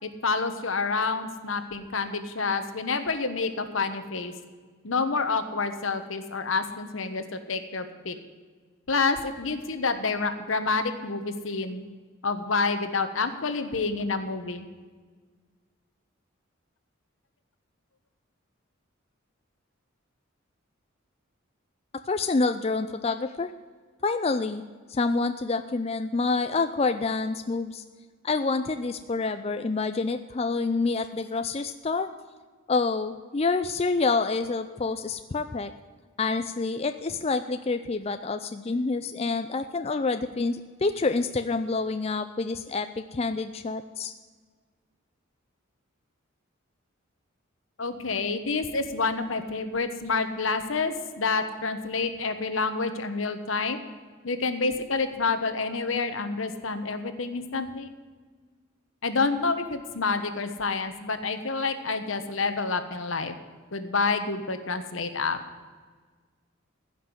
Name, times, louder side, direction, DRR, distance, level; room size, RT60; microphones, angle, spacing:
voice 1, 0.0-4.3 4.8-8.2 8.9-11.8 12.2-14.6 47.8-53.8 54.2-57.9 59.0-63.3 63.7-65.4, left 4 dB, 75° left, 9 dB, 1.2 m, -28 dB
voice 2, 22.1-23.5 24.0-24.6 24.9-27.8 28.2-32.1 32.7-35.7 36.2-44.1, left 3 dB, 30° left, 9 dB, 0.4 m, -27 dB
15.5 x 6.0 x 9.6 m, 1.5 s
head